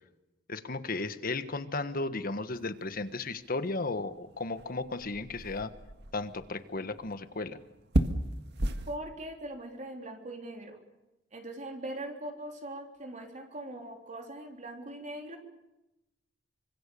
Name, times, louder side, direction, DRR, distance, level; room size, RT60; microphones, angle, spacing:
voice 1, 0.5-5.7 6.1-7.6, left 3 dB, 50° left, 11 dB, 1.4 m, -35 dB
sound 1, 2.5-9.0, right 1 dB, 60° right, 1.8 m, -36 dB
voice 2, 8.9-10.8 11.3-15.4, right 1 dB, 40° right, 2 dB, 3.6 m, -41 dB
26.0 x 25.5 x 6.9 m, 0.95 s
head